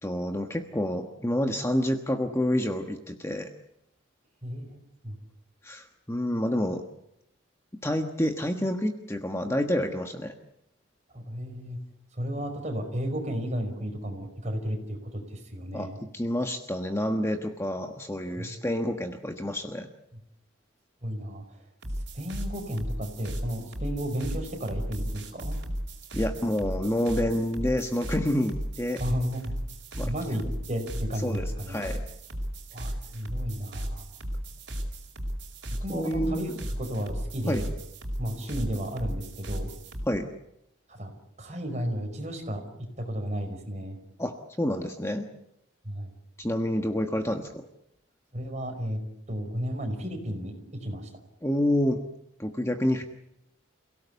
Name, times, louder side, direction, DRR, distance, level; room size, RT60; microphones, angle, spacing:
voice 1, 0.0-3.5 5.6-6.8 7.8-10.3 15.7-19.9 26.1-29.0 30.0-30.1 31.2-32.0 35.9-36.5 37.5-37.6 40.0-40.3 44.2-45.3 46.4-47.6 51.4-52.0 52.4-53.0, left 1 dB, 15° left, 5 dB, 1.3 m, -28 dB
voice 2, 4.4-5.1 11.1-11.8 12.1-16.0 18.4-18.6 21.0-21.4 22.1-25.6 29.0-29.6 30.0-30.4 30.7-31.9 32.7-34.0 35.8-37.7 38.2-39.7 40.9-41.1 41.4-44.0 45.8-46.1 48.3-49.0 49.3-51.1, equal, 35° right, 4 dB, 5.2 m, -33 dB
sound 1, 21.8-40.0, equal, 60° right, 5.2 m, -35 dB
28.5 x 17.5 x 8.3 m, 0.80 s
head